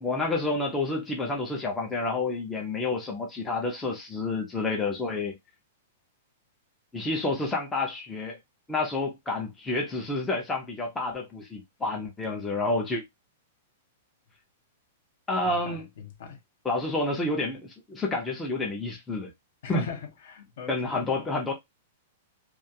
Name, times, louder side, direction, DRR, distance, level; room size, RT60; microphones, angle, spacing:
voice 1, 0.0-5.4 6.9-8.4 8.7-13.0 15.3-15.8 16.6-19.3 19.7-19.8 20.7-21.5, left 2 dB, 5° left, 0.4 m, -29 dB
voice 2, 15.4-16.4 19.6-21.1, left 6 dB, 55° left, 0.7 m, -39 dB
2.2 x 2.2 x 2.6 m
supercardioid pair, 175°, 0 cm